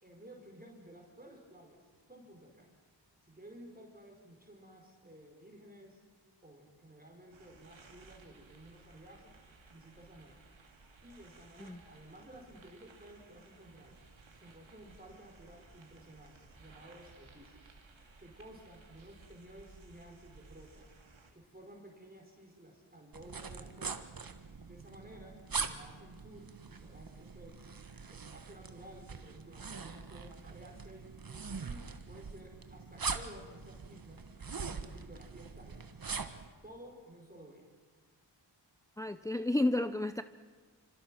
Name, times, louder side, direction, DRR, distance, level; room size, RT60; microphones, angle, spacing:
voice 1, 0.0-1.8 2.1-2.7 3.2-6.0 6.4-9.3 9.7-10.4 11.0-14.0 14.4-17.7 18.2-20.9 21.3-24.0 24.7-27.6 28.1-31.2 31.6-34.3 34.8-36.0 36.6-37.7, right 1 dB, 20° right, 1 dB, 4.5 m, -54 dB
sound 1, 7.3-21.3, right 3 dB, 80° right, 2.9 m, -59 dB
sound 2, 23.1-36.5, right 5 dB, 50° right, 1.5 m, -42 dB
voice 2, 39.0-40.2, left 1 dB, 5° left, 10 dB, 0.6 m, -31 dB
27.0 x 26.0 x 6.2 m, 1.5 s
wide cardioid pair, 65°, 46 cm